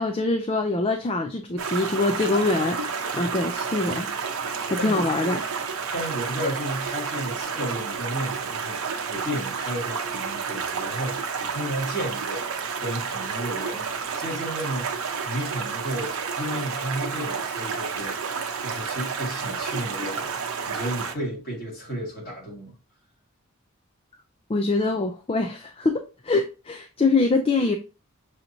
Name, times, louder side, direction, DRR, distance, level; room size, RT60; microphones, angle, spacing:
voice 1, 0.0-4.1 4.7-5.4 24.5-27.8, left 3 dB, 25° left, 0.3 m, -24 dB
Stream, 1.6-21.1, right 5 dB, 90° right, 0.7 m, -30 dB
voice 2, 4.5-5.1 5.9-22.7, equal, 45° left, 2.0 m, -33 dB
6.3 x 2.9 x 2.6 m
head